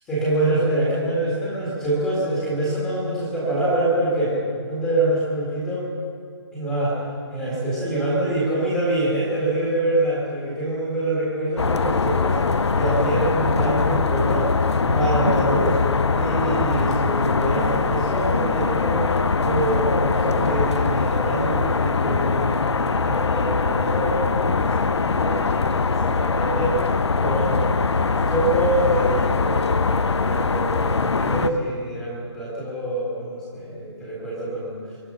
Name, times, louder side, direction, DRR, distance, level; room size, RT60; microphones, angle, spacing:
voice 1, 0.1-5.9 6.5-7.0 7.3-12.4 12.7-14.5 14.8-15.8 16.1-19.1 19.4-34.8, right 1 dB, 5° left, -7 dB, 1.9 m, -25 dB
sound 1, 11.6-31.5, left 4 dB, 75° left, 0.8 m, -22 dB
23.0 x 10.0 x 5.5 m, 2.1 s
hypercardioid pair, 175°, 14 cm